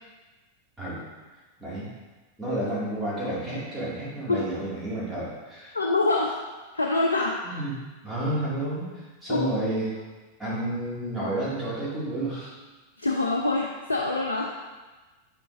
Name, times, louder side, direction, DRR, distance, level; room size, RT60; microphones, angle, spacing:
voice 1, 2.4-5.8 7.4-7.7 8.0-9.9 10.4-12.5, right 1 dB, 5° right, -10 dB, 2.2 m, -30 dB
voice 2, 5.7-6.4 6.7-7.4 9.3-9.5 13.0-14.5, left 2 dB, 80° left, -1 dB, 0.6 m, -25 dB
7.5 x 6.8 x 2.6 m, 1.2 s
figure-of-eight pair, 90°, 0 cm